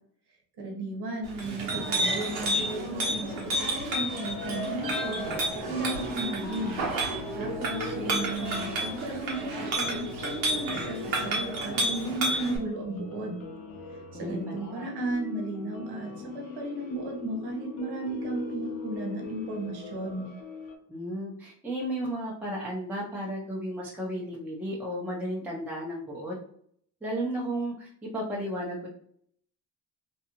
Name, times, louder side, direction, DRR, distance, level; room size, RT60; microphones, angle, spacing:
voice 1, 0.6-6.8 7.3-13.5 13.9-20.3, right 2 dB, 55° right, 0 dB, 1.1 m, -35 dB
Chink clink, 1.2-12.6, right 1 dB, 80° right, 1.0 m, -31 dB
sound 1, 3.2-20.8, left 3 dB, 80° left, 0.7 m, -41 dB
voice 2, 14.1-14.9 20.9-26.4 27.0-28.9, right 1 dB, 5° right, -4 dB, 0.7 m, -34 dB
2.6 x 2.3 x 2.9 m, 0.64 s
supercardioid pair, 55°, 46 cm